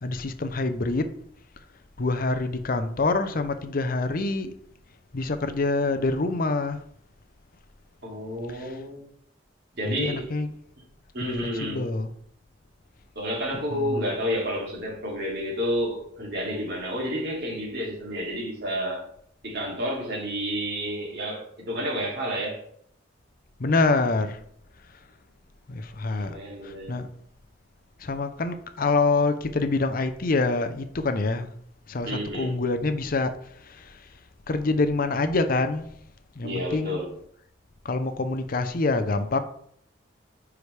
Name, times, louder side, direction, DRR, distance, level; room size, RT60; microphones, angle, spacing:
voice 1, 0.0-1.1 2.0-4.5 5.1-6.8 8.5-8.8 9.9-10.5 11.2-12.1 13.7-14.0 23.6-24.4 25.7-26.4 26.6-27.1 28.0-31.5 31.9-34.1 34.5-35.9 36.4-37.0 37.8-39.4, left 3 dB, 45° left, 0.6 m, -26 dB
voice 2, 8.0-9.0 9.7-10.3 11.1-11.8 13.2-19.1 19.4-22.6 26.2-27.0 32.0-32.6 36.4-37.1, equal, 55° right, 2.6 m, -30 dB
9.5 x 4.9 x 3.3 m
head